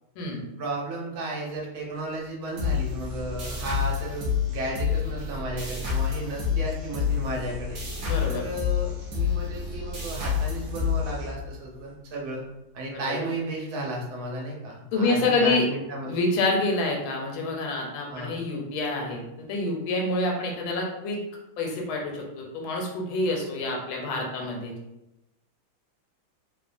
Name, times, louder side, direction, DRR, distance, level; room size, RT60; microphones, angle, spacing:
voice 1, 0.6-12.4 12.7-16.2 18.1-18.4, right 1 dB, 85° right, -2 dB, 1.5 m, -34 dB
sound 1, 2.6-11.8, left 7 dB, 65° right, 0.8 m, -29 dB
voice 2, 8.0-8.4 12.9-13.2 14.9-15.7 16.0-21.2 21.6-24.7, left 2 dB, 85° left, 0 dB, 1.4 m, -27 dB
3.4 x 2.1 x 2.4 m, 0.92 s
omnidirectional pair, 2.2 m